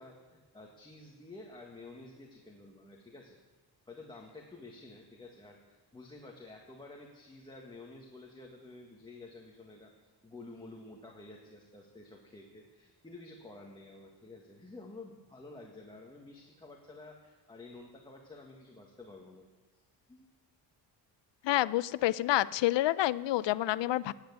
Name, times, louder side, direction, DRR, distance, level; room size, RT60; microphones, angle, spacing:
voice 1, 0.0-3.4 3.9-9.9 10.2-19.5 20.1-20.3, left 2 dB, 10° left, -1 dB, 1.5 m, -51 dB
voice 2, 21.4-24.1, left 15 dB, 85° left, 17 dB, 0.6 m, -28 dB
18.0 x 9.9 x 8.1 m, 1.2 s
wide cardioid pair, 175°, 42 cm